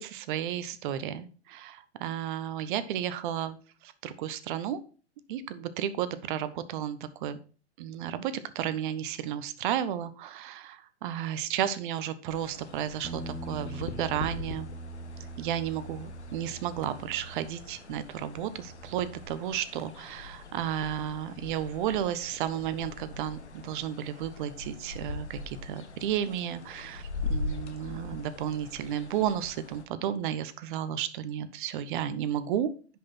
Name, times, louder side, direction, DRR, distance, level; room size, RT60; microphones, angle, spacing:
voice 1, 0.0-3.6 3.8-4.8 5.3-7.4 7.8-14.7 15.4-32.7, right 10 dB, 50° right, 14 dB, 1.1 m, -33 dB
sound 1, 12.3-29.8, left 3 dB, 85° left, 1.4 m, -41 dB
Bass guitar, 13.0-17.8 18.1-19.3, right 2 dB, 5° right, 3.1 m, -43 dB
10.0 x 5.7 x 4.3 m, 0.37 s
figure-of-eight pair, 105°, 33 cm